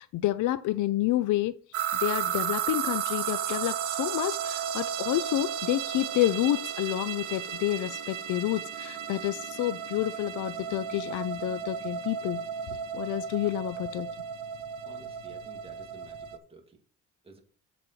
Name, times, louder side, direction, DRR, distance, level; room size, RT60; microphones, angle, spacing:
voice 1, 0.0-1.6 2.0-12.4 12.9-14.1, left 14 dB, 80° left, 0.6 m, -29 dB
sound 1, 1.7-16.4, right 9 dB, 85° right, 0.9 m, -34 dB
voice 2, 14.8-16.8 17.2-17.4, right 4 dB, 20° right, 2.2 m, -52 dB
7.1 x 4.3 x 6.7 m
cardioid pair, 90°, 30 cm